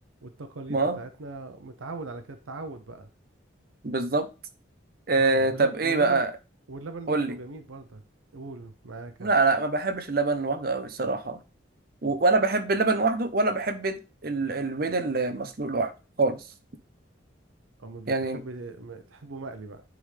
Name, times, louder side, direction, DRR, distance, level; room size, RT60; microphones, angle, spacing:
voice 1, 0.2-3.1 5.2-6.3 6.7-8.0 8.3-9.4 17.8-19.8, right 3 dB, 90° right, 0.7 m, -40 dB
voice 2, 3.8-4.3 5.1-6.3 7.1-7.3 9.2-11.4 12.0-15.9 16.2-16.4 18.1-18.4, right 3 dB, 50° right, 0.7 m, -25 dB
9.3 x 3.7 x 3.3 m
head